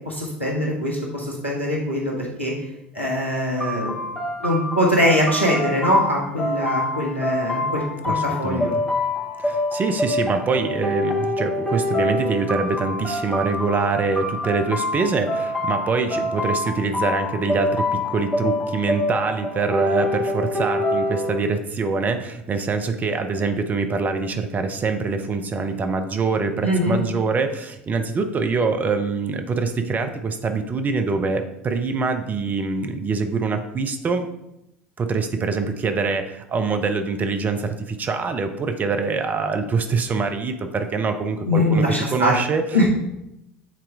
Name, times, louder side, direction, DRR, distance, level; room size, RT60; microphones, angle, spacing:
voice 1, 0.0-2.5 2.9-4.0 4.4-8.7 26.6-27.0 41.4-42.4 42.7-42.9, left 1 dB, 90° left, -2 dB, 1.3 m, -22 dB
sound 1, 3.6-21.4, left 1 dB, 5° left, 1.9 m, -26 dB
voice 2, 8.0-8.7 9.4-34.3 35.0-41.9 42.1-42.6, right 4 dB, 25° right, 7 dB, 0.7 m, -24 dB
7.4 x 4.3 x 3.5 m, 0.86 s
figure-of-eight pair, 70°, 6 cm